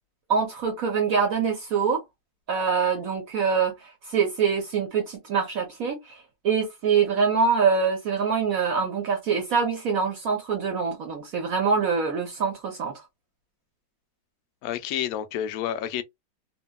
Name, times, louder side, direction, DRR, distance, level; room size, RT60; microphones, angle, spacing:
voice 1, 0.3-2.0 2.5-13.0, right 5 dB, 65° right, 0.9 m, -25 dB
voice 2, 14.6-16.0, left 10 dB, 90° left, 0.7 m, -29 dB
2.9 x 2.6 x 2.2 m
omnidirectional pair, 2.1 m